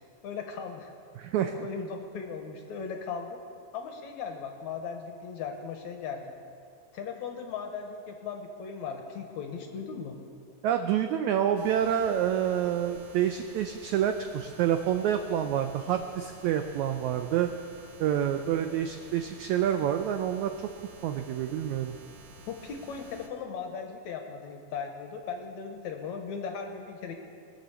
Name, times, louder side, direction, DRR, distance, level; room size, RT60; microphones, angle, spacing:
voice 1, 0.2-0.9 1.4-3.4 3.7-6.3 6.9-10.2 22.5-27.1, left 6 dB, 70° left, 3 dB, 2.0 m, -38 dB
voice 2, 1.2-1.5 10.6-17.5 18.0-20.5 21.0-21.9, right 10 dB, 85° right, 7 dB, 1.6 m, -28 dB
sound 1, 11.6-23.3, right 4 dB, 60° right, 2.3 m, -51 dB
21.0 x 7.2 x 6.8 m, 2.4 s
omnidirectional pair, 4.0 m